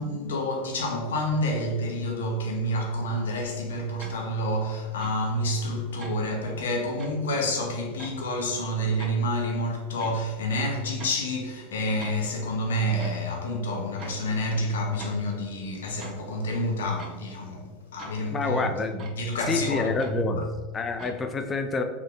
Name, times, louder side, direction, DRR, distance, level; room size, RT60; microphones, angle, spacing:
voice 1, 0.0-18.7 19.0-20.4, equal, 90° left, 0.8 m, -28 dB
sound 1, 4.0-4.2 5.0-5.2 6.0-6.2 7.0-7.1 8.0-8.2 9.0-9.1 10.0-10.2 11.0-11.2 12.0-12.4 13.0-13.2 14.0-14.4 15.0-15.3 16.0-16.3 17.0-17.2 18.0-18.4 19.0-19.2 20.0-20.2 21.0-21.2, right 5 dB, 40° right, 0.8 m, -43 dB
voice 2, 18.3-19.1 19.5-21.8, left 4 dB, 25° left, 0.4 m, -28 dB
3.4 x 2.7 x 3.8 m
hypercardioid pair, 105°, 0 cm